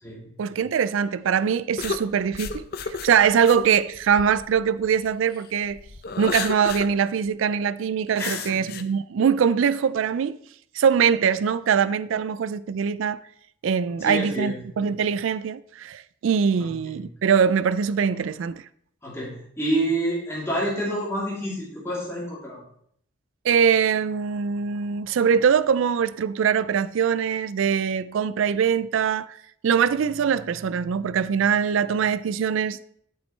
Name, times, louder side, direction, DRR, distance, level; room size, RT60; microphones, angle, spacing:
voice 1, 0.4-5.8 6.2-10.4 10.7-13.2 13.6-18.6 23.4-29.4 29.6-32.9, right 7 dB, 80° right, 0.3 m, -22 dB
sound 1, 1.8-5.1 5.6-6.9 7.3-7.4 8.1-8.8, left 5 dB, 50° left, 0.6 m, -32 dB
voice 2, 8.2-8.6 14.0-14.6 16.6-16.9 19.0-22.6, right 1 dB, 15° left, 3.1 m, -28 dB
9.1 x 8.4 x 3.3 m
head